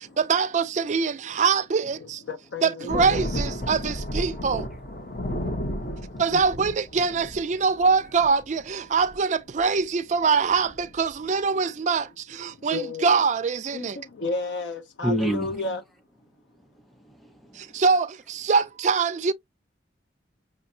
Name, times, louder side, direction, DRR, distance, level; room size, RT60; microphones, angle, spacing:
voice 1, 0.2-2.2 2.6-4.7 6.2-14.0 17.5-19.3, right 5 dB, 40° right, 0.3 m, -24 dB
voice 2, 2.0-3.1 3.6-3.7 5.1-6.4 12.6-13.1 13.7-15.8, left 3 dB, 80° left, 0.5 m, -34 dB
sound 1, 2.9-8.7 9.0-9.2 9.6-9.8 10.1-10.2 10.5-11.1, equal, 50° left, 0.8 m, -33 dB
voice 3, 5.1-6.2 15.0-15.7 16.3-17.8, equal, ahead, 0.6 m, -32 dB
6.0 x 2.0 x 2.6 m
head